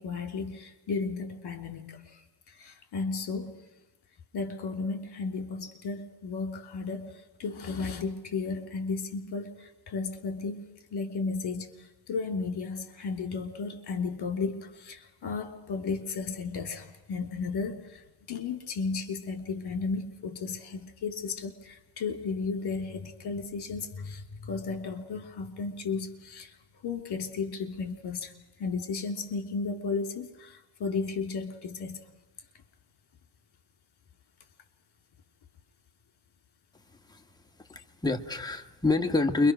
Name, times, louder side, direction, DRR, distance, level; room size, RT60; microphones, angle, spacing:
voice 1, 0.0-3.5 4.3-10.6 10.9-26.5 26.8-28.3 28.6-32.0, left 4 dB, 50° left, 6 dB, 3.4 m, -34 dB
voice 2, 37.7-39.5, left 3 dB, 10° left, 4 dB, 1.5 m, -27 dB
29.0 x 23.5 x 6.3 m, 1.1 s
cardioid pair, 120°, 49 cm